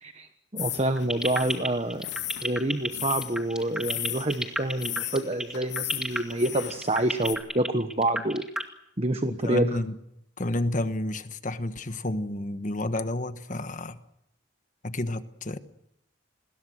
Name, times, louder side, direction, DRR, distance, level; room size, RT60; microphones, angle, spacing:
voice 1, 0.0-2.1 2.4-8.4 9.0-9.8, right 1 dB, 30° right, 1.3 m, -27 dB
sound 1, 0.6-7.3, left 12 dB, 65° left, 3.3 m, -36 dB
sound 2, 1.0-8.6, right 1 dB, 5° right, 2.2 m, -30 dB
voice 2, 9.2-9.9 10.4-14.0 14.8-15.6, left 1 dB, 40° left, 1.3 m, -30 dB
29.0 x 21.5 x 6.5 m
head